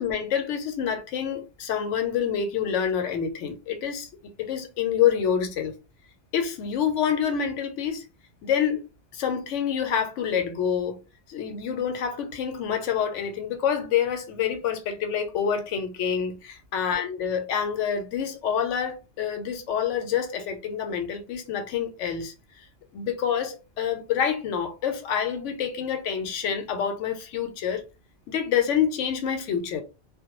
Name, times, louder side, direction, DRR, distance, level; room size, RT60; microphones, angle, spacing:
voice 1, 0.0-5.8 6.3-8.1 8.4-8.9 9.1-11.0 11.3-22.7 22.9-27.8 28.3-29.8, left 8 dB, 85° left, 0.9 m, -27 dB
2.2 x 2.0 x 2.9 m
omnidirectional pair, 1.2 m